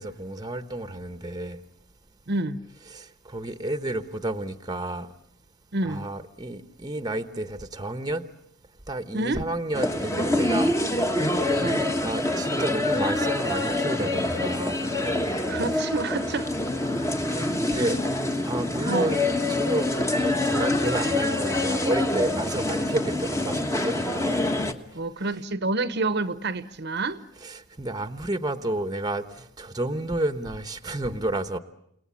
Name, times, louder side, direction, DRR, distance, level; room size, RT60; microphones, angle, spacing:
voice 1, 0.0-1.6 2.9-5.1 5.8-8.2 8.9-10.7 12.0-14.8 17.2-18.0 18.4-24.5 27.4-31.6, right 1 dB, 20° right, 1.1 m, -31 dB
voice 2, 2.3-2.6 5.7-6.1 9.1-9.5 11.6-11.9 15.4-16.5 17.8-17.9 18.9-19.2 24.9-27.2, right 2 dB, 50° right, 1.0 m, -28 dB
sound 1, 9.7-24.7, left 1 dB, 15° left, 1.3 m, -26 dB
29.5 x 19.0 x 8.5 m
head